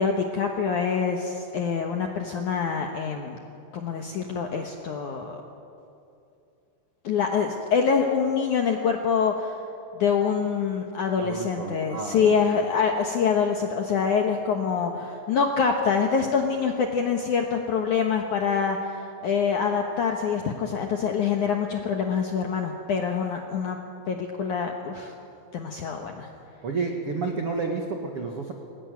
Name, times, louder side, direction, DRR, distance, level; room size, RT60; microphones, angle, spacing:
voice 1, 0.0-3.4 3.7-5.4 7.0-9.6 10.0-23.8 24.1-25.1 25.5-26.3, left 6 dB, 75° left, 3 dB, 1.8 m, -25 dB
voice 2, 11.2-12.6 26.6-28.5, right 4 dB, 90° right, 2 dB, 1.2 m, -31 dB
22.5 x 18.5 x 9.4 m, 2.7 s
omnidirectional pair, 5.3 m